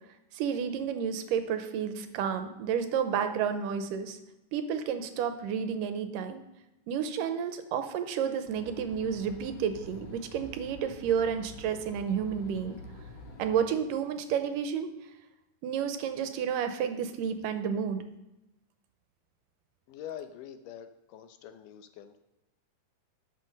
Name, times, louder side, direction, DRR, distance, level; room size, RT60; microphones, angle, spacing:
voice 1, 0.3-4.2 4.5-6.4 6.9-12.8 13.4-14.9 15.6-18.0, right 7 dB, 90° right, 8 dB, 2.4 m, -31 dB
sound 1, 8.5-13.5, left 1 dB, 55° left, 2.5 m, -47 dB
voice 2, 19.9-22.2, left 10 dB, 80° left, 9 dB, 2.2 m, -45 dB
12.5 x 6.1 x 5.3 m, 0.95 s
omnidirectional pair, 3.8 m